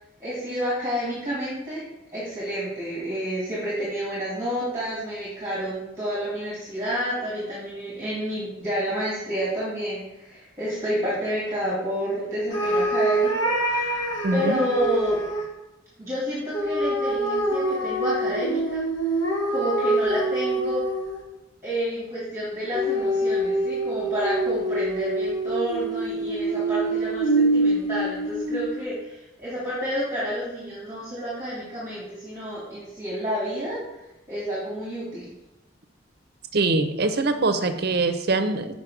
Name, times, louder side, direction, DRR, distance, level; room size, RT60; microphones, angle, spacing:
voice 1, 0.2-1.8 2.1-14.0 14.3-15.2 16.0-18.8 19.5-20.8 21.6-33.8 34.3-35.3, equal, 15° right, -7 dB, 1.9 m, -29 dB
sound 1, 12.5-15.5 16.5-21.3 22.7-28.8, right 1 dB, 80° left, 1.6 m, -25 dB
voice 2, 14.2-14.6 36.5-38.7, right 3 dB, 55° right, 8 dB, 0.6 m, -23 dB
6.7 x 5.2 x 4.8 m, 0.94 s
head